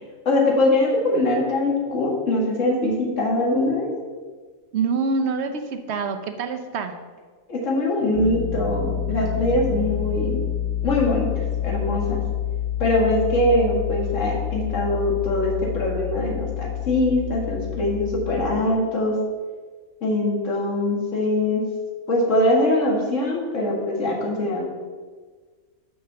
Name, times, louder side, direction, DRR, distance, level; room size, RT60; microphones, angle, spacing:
voice 1, 0.3-3.9 7.5-10.4 10.8-12.2 12.8-19.2 20.0-21.6 22.1-24.6, left 1 dB, 60° left, -2 dB, 2.1 m, -22 dB
voice 2, 4.7-6.9, right 4 dB, 60° right, 7 dB, 0.9 m, -25 dB
sound 1, 8.1-18.6, left 11 dB, 80° left, 1.1 m, -28 dB
6.3 x 5.9 x 6.7 m, 1.5 s
omnidirectional pair, 1.4 m